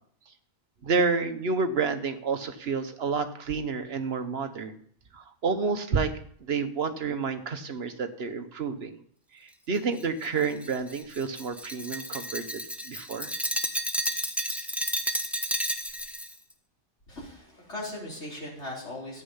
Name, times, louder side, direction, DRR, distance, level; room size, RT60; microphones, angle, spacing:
voice 1, 0.8-4.8 5.1-6.1 6.4-9.0 9.3-13.3, right 5 dB, 60° right, 9 dB, 1.3 m, -29 dB
Glass, 10.0-16.3, equal, ahead, 1.1 m, -32 dB
voice 2, 17.1-19.2, left 1 dB, 80° left, -4 dB, 4.7 m, -38 dB
13.5 x 9.8 x 5.7 m, 0.62 s
omnidirectional pair, 1.2 m